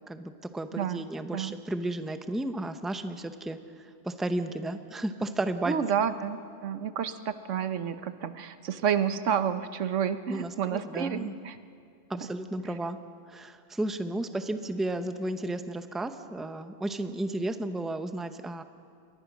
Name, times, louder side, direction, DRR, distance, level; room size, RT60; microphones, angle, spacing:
voice 1, 0.1-5.8 10.3-11.3 12.1-13.0 13.3-18.6, right 1 dB, ahead, 8 dB, 0.7 m, -33 dB
voice 2, 5.7-11.6, right 8 dB, 90° right, 11 dB, 1.2 m, -30 dB
28.0 x 22.0 x 6.2 m, 2.4 s
omnidirectional pair, 1.2 m